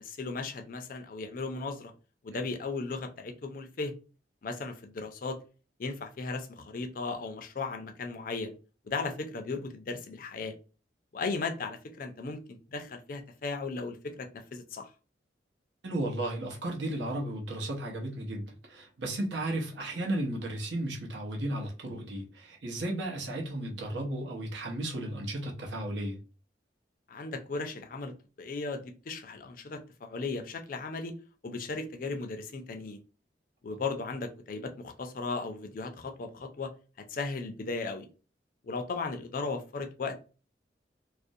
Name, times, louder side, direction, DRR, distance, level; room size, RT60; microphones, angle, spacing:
voice 1, 0.0-1.9 2.2-3.9 4.4-5.4 5.8-8.5 8.8-10.5 11.1-14.9 27.1-31.1 31.4-33.0 33.6-36.7 37.1-38.1 38.6-40.2, left 3 dB, 50° left, 0.4 m, -36 dB
voice 2, 15.8-26.2, right 1 dB, 85° right, 0.7 m, -34 dB
2.4 x 2.1 x 2.6 m
head